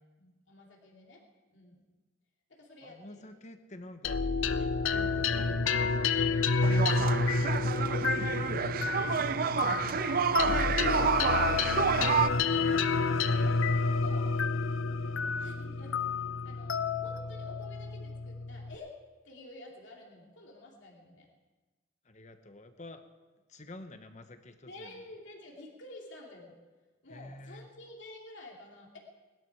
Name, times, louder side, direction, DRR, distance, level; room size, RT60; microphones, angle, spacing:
voice 1, 0.2-1.2 1.5-1.9 2.5-3.3 7.0-8.5 8.9-10.2 10.9-14.3 15.4-16.0 16.4-19.0 19.2-21.3 24.7-26.6 27.0-29.0, left 2 dB, 65° left, -1 dB, 2.8 m, -51 dB
voice 2, 2.8-4.2 4.6-6.4 13.1-13.6 15.0-15.3 22.0-23.0 23.5-25.0 27.1-27.7, left 2 dB, 35° left, 8 dB, 1.1 m, -49 dB
sound 1, 4.0-18.7, left 4 dB, 85° left, 0.7 m, -29 dB
sound 2, 6.6-12.3, right 6 dB, 45° right, 0.4 m, -29 dB
20.5 x 12.0 x 4.8 m, 1.2 s
head